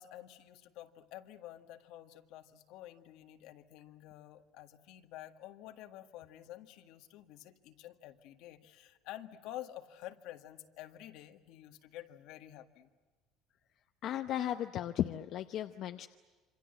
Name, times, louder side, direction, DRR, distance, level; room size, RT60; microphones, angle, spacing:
voice 1, 0.0-12.9, left 13 dB, 70° left, 8 dB, 1.7 m, -50 dB
voice 2, 14.0-16.1, left 11 dB, 50° left, 7 dB, 0.8 m, -35 dB
27.5 x 25.5 x 7.9 m, 1.3 s
cardioid pair, 155°, 0 cm